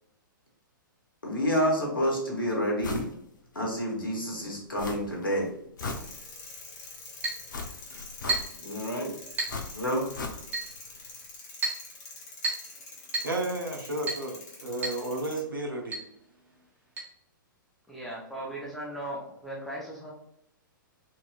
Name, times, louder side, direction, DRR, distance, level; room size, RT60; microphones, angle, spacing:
voice 1, 1.2-3.0 3.5-5.5 8.6-9.1 9.7-10.0, equal, 80° left, -1 dB, 1.4 m, -28 dB
sound 1, 2.8-3.1 3.5-3.6 4.8-5.3 5.6-6.6 7.5-8.8 9.5-10.7 11.0-11.1, left 3 dB, 65° left, 0.8 m, -37 dB
sound 2, 5.8-15.4, left 3 dB, 45° left, 1.2 m, -46 dB
Chink clink, 7.2-7.5 8.3-8.6 9.4-9.6 10.5-10.7 11.6-11.9 12.4-12.7 13.1-13.4 14.1-14.3 14.8-15.0 15.3-15.4 15.9-16.1 17.0-17.1, right 3 dB, 15° right, 1.2 m, -31 dB
voice 2, 13.2-16.0, right 2 dB, 80° right, 1 dB, 1.0 m, -32 dB
voice 3, 17.9-20.1, right 1 dB, ahead, -6 dB, 0.7 m, -38 dB
4.5 x 2.8 x 2.4 m, 0.75 s
figure-of-eight pair, 110°, 11 cm